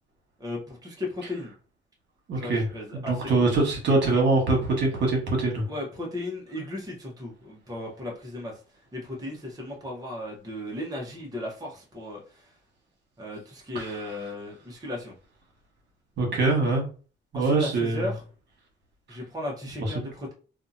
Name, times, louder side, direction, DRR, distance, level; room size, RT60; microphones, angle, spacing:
voice 1, 0.4-1.5 2.4-3.5 5.7-8.5 8.9-12.4 13.2-15.1 17.3-18.2 19.1-20.3, left 1 dB, 20° right, -2 dB, 0.9 m, -36 dB
voice 2, 2.3-2.7 2.9-5.6 13.7-14.0 16.2-16.9 17.3-18.1 19.8-20.1, right 3 dB, 60° right, 0 dB, 1.3 m, -24 dB
2.7 x 2.4 x 2.7 m, 0.37 s
cardioid pair, 90°, 20 cm